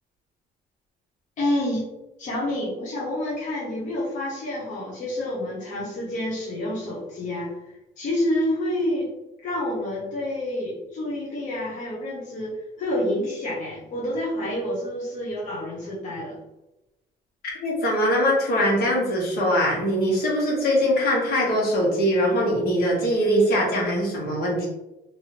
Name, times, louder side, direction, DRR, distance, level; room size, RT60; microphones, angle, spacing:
voice 1, 1.4-1.9 2.2-9.1 9.4-16.4, left 1 dB, 45° left, -5 dB, 0.9 m, -28 dB
voice 2, 17.6-24.7, equal, 70° left, -3 dB, 1.3 m, -22 dB
2.7 x 2.7 x 2.9 m, 0.95 s
cardioid pair, 110°, 17 cm